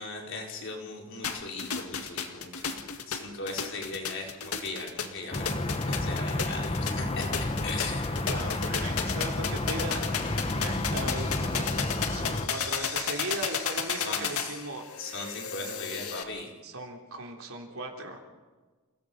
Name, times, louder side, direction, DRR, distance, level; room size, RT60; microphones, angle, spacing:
voice 1, 0.0-8.2 14.0-14.4 15.0-16.5, left 3 dB, 60° left, -1 dB, 4.8 m, -39 dB
sound 1, 1.2-16.2, left 7 dB, 80° left, 1.9 m, -34 dB
sound 2, 5.3-12.5, left 2 dB, 25° left, 1.2 m, -31 dB
voice 2, 8.1-10.2 10.6-14.8 16.6-18.2, right 2 dB, 70° right, 1 dB, 3.7 m, -38 dB
29.0 x 17.5 x 5.5 m, 1.3 s
head